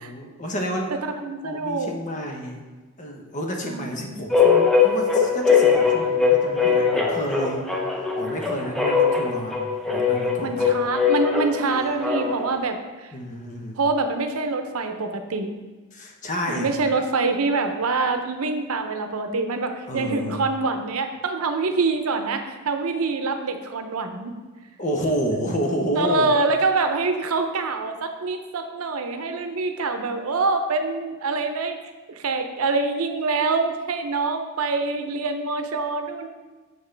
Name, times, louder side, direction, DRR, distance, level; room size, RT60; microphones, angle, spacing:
voice 1, 0.0-0.9 1.4-2.6 3.0-7.7 8.2-9.6 9.9-10.7 13.1-13.8 15.9-16.7 19.9-20.4 24.8-26.3, equal, 35° left, 2 dB, 0.9 m, -30 dB
voice 2, 0.9-1.9 3.6-4.2 10.4-13.1 13.8-15.5 16.5-24.3 26.0-31.8 32.1-36.3, right 3 dB, 85° right, 7 dB, 0.6 m, -25 dB
sound 1, 4.3-12.5, left 5 dB, ahead, 0.7 m, -21 dB
7.0 x 6.0 x 3.3 m, 1.2 s
head